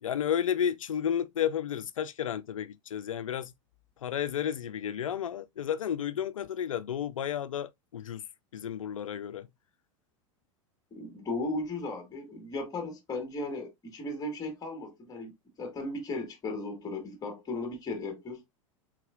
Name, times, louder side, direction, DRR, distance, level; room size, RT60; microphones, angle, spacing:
voice 1, 0.0-3.5 4.0-8.2 8.5-9.5, left 9 dB, 90° left, 0.4 m, -32 dB
voice 2, 10.9-18.4, left 2 dB, 25° left, 1.6 m, -36 dB
4.7 x 3.7 x 2.3 m
hypercardioid pair, 95°, 16 cm